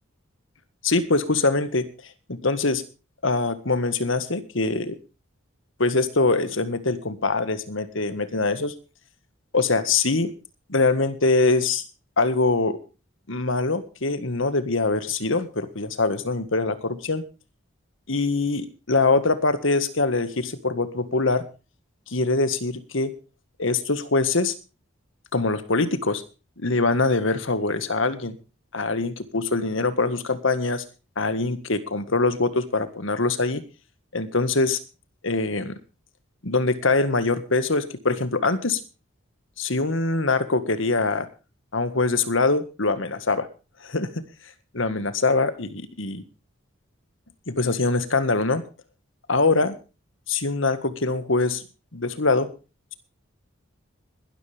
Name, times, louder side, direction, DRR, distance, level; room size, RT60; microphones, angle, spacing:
voice 1, 0.8-2.8 3.2-5.0 5.8-8.7 9.5-10.3 10.7-11.8 12.2-12.8 13.3-17.2 18.1-21.4 22.1-23.1 23.6-24.5 25.3-26.2 26.6-28.3 28.7-30.8 31.2-33.6 34.1-34.8 35.2-35.7 36.4-38.8 39.6-41.3 41.7-43.5 43.8-44.2 44.7-46.2 47.5-48.6 49.3-49.7 50.3-51.6 51.9-52.5, left 3 dB, 65° left, 12 dB, 1.7 m, -23 dB
21.5 x 13.0 x 3.5 m, 0.33 s
head